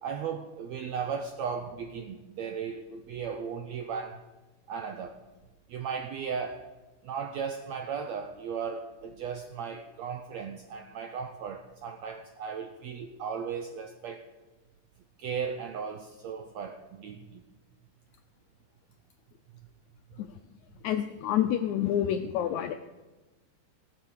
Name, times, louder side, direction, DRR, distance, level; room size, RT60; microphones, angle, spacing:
voice 1, 0.0-4.2 4.7-5.2 5.7-6.7 7.0-14.3 15.2-17.4, right 6 dB, 85° right, 6 dB, 1.5 m, -36 dB
voice 2, 20.8-22.7, left 10 dB, 85° left, 7 dB, 1.7 m, -28 dB
17.5 x 7.4 x 6.5 m, 1.2 s
omnidirectional pair, 3.9 m